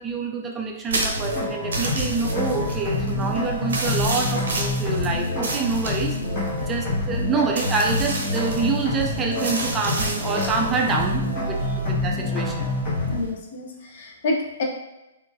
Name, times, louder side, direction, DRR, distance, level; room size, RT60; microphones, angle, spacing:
voice 1, 0.0-6.2 6.6-12.7, right 4 dB, 15° right, 1 dB, 0.3 m, -26 dB
sound 1, 0.9-13.3, right 2 dB, 60° right, 0.6 m, -31 dB
sound 2, 1.1-13.2, left 2 dB, 30° left, 1.1 m, -27 dB
voice 2, 13.1-14.6, left 2 dB, 50° left, 0 dB, 0.6 m, -28 dB
3.7 x 2.5 x 2.2 m, 0.97 s
figure-of-eight pair, 115°, 0 cm